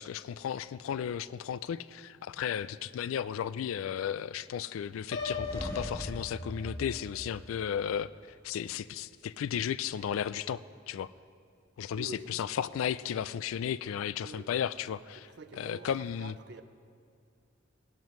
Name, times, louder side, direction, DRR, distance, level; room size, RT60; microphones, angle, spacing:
voice 1, 0.0-8.1 8.4-10.6 10.9-11.1 11.8-15.3 15.6-16.3, left 8 dB, 90° left, 18 dB, 0.3 m, -34 dB
Piano, 5.1-7.0, left 4 dB, 70° left, 1.0 m, -38 dB
sound 1, 5.1-8.1, equal, 15° left, 1.2 m, -42 dB
voice 2, 11.9-12.4 14.2-14.5 15.2-16.6, right 3 dB, 55° right, 11 dB, 0.5 m, -47 dB
16.5 x 12.0 x 3.1 m, 2.3 s
head